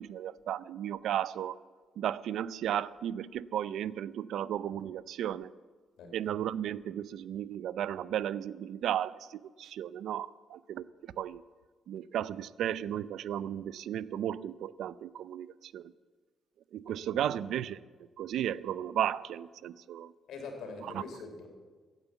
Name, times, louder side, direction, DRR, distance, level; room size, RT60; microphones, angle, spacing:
voice 1, 0.0-1.6 2.0-5.5 6.1-11.4 11.9-15.9 16.7-17.8 18.2-20.1 20.9-21.0, right 10 dB, 75° right, 18 dB, 0.4 m, -34 dB
voice 2, 16.9-17.5 20.3-21.5, left 4 dB, 75° left, 4 dB, 3.1 m, -44 dB
15.0 x 9.1 x 8.0 m, 1.5 s
cardioid pair, 90°, 0 cm